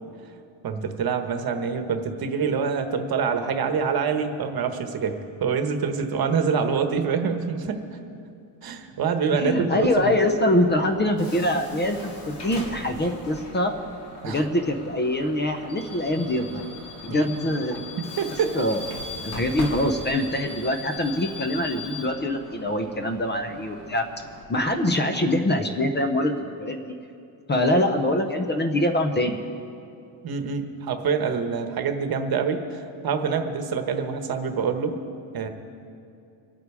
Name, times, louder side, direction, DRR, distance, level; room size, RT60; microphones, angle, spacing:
voice 1, 0.6-7.8 8.6-10.2 14.2-14.4 17.1-18.5 25.0-25.1 30.2-35.0 35.3-35.5, right 6 dB, 50° right, 7 dB, 1.1 m, -26 dB
voice 2, 9.4-13.8 14.2-16.6 17.0-17.8 18.5-18.9 19.2-24.1 24.5-26.9 27.5-29.4, left 1 dB, 25° left, 6 dB, 0.7 m, -24 dB
Bus / Alarm, 9.8-24.4, left 2 dB, 60° left, 2.1 m, -40 dB
25.5 x 8.6 x 4.8 m, 2.5 s
cardioid pair, 175°, 47 cm